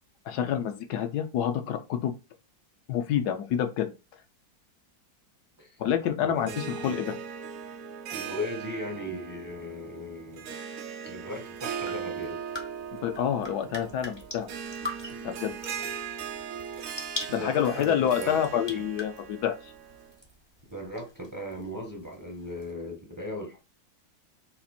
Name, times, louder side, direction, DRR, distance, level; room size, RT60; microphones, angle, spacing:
voice 1, 0.3-2.1 2.9-3.9 5.8-7.1 13.0-14.5 15.2-15.5 17.3-19.7, left 9 dB, 70° left, 1.1 m, -28 dB
voice 2, 6.2-7.1 8.1-10.6 11.0-12.4 17.3-18.8 20.7-23.6, left 1 dB, 20° right, 0.6 m, -38 dB
Harp, 6.4-20.1, right 7 dB, 80° right, 0.7 m, -39 dB
sound 1, 11.4-22.7, left 2 dB, 30° left, 0.5 m, -44 dB
4.2 x 2.5 x 4.2 m
omnidirectional pair, 2.0 m